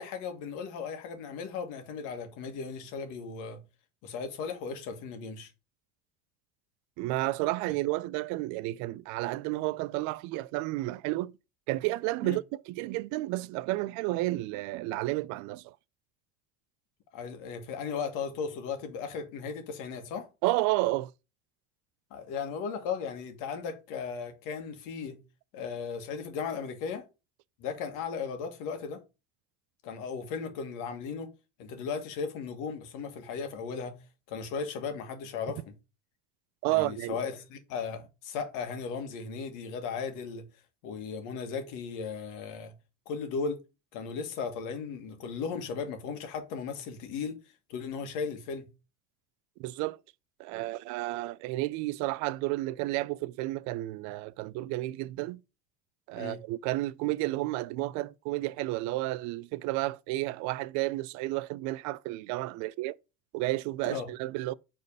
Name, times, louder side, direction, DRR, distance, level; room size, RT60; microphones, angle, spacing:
voice 1, 0.0-3.6 4.0-5.5 12.2-12.4 17.1-20.3 22.1-25.2 25.5-27.0 27.6-29.0 29.8-31.3 31.6-34.0 34.3-35.7 36.7-40.5 40.8-42.7 43.0-43.6 43.9-47.4 47.7-48.7 56.1-56.4 63.8-64.1, left 5 dB, 70° left, 1.7 m, -36 dB
voice 2, 7.0-11.3 11.7-15.8 20.4-21.1 36.6-37.2 49.6-50.0 50.4-55.4 56.1-62.9 63.3-64.5, right 18 dB, 65° right, 0.4 m, -31 dB
5.0 x 4.2 x 5.4 m
supercardioid pair, 110°, 32 cm